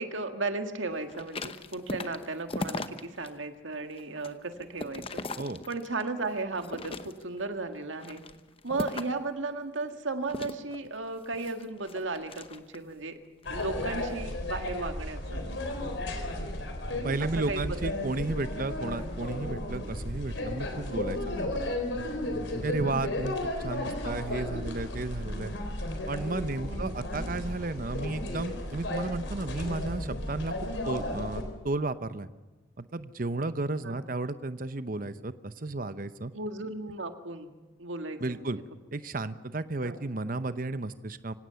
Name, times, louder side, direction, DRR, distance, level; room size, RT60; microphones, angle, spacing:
voice 1, 0.0-5.2 5.7-8.2 8.6-13.1 13.5-15.4 17.2-17.9 26.7-26.9 33.8-34.0 36.3-37.5 37.8-38.6 39.8-40.0, right 3 dB, 80° right, 7 dB, 1.9 m, -35 dB
sound 1, 1.1-3.3 3.7-6.1 6.5-7.4 7.9-9.3 10.3-12.9 13.4-13.7, left 2 dB, 30° left, 0.9 m, -39 dB
sound 2, 13.4-31.4, left 1 dB, 75° left, 3.8 m, -34 dB
voice 2, 17.0-21.6 22.6-25.6 26.1-30.5 30.8-32.3 32.8-36.3 38.2-38.6 38.9-41.3, right 2 dB, 45° right, 12 dB, 0.8 m, -33 dB
25.5 x 17.5 x 7.0 m, 1.2 s
head